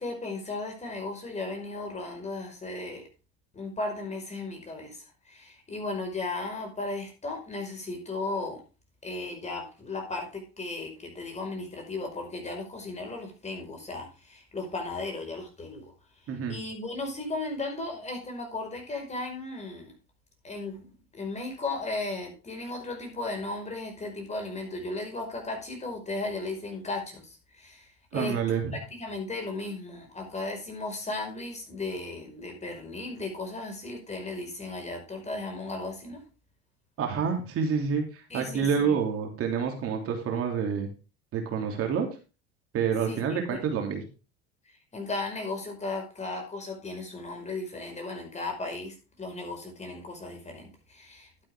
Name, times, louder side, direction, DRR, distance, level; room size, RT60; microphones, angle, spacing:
voice 1, 0.0-3.0 3.5-8.6 9.0-15.8 16.5-19.9 20.4-28.6 28.9-36.2 38.3-39.0 43.0-43.6 44.9-51.4, left 2 dB, 20° left, 3 dB, 5.1 m, -36 dB
voice 2, 28.1-28.7 37.0-40.9 41.3-42.1 42.7-44.0, right 6 dB, 45° right, 3 dB, 3.0 m, -28 dB
12.0 x 8.6 x 3.6 m, 0.31 s
supercardioid pair, 95°, 31 cm